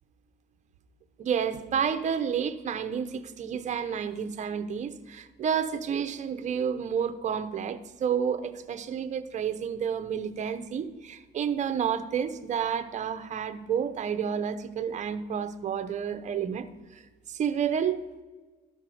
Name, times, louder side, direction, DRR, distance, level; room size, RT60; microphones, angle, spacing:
voice 1, 1.2-16.7 16.9-17.0 17.3-18.0, right 7 dB, 45° right, 10 dB, 0.8 m, -30 dB
13.5 x 5.7 x 4.9 m, 1.2 s
cardioid pair, 110°, 17 cm